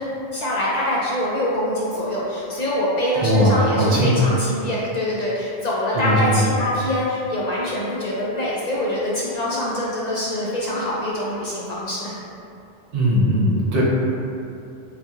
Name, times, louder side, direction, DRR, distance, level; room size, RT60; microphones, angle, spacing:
voice 1, 0.0-12.1, left 1 dB, 70° left, -6 dB, 0.4 m, -24 dB
voice 2, 3.2-4.2 5.9-6.5 12.9-13.8, equal, 80° right, -5 dB, 1.1 m, -19 dB
3.9 x 2.8 x 2.3 m, 2.7 s
omnidirectional pair, 1.2 m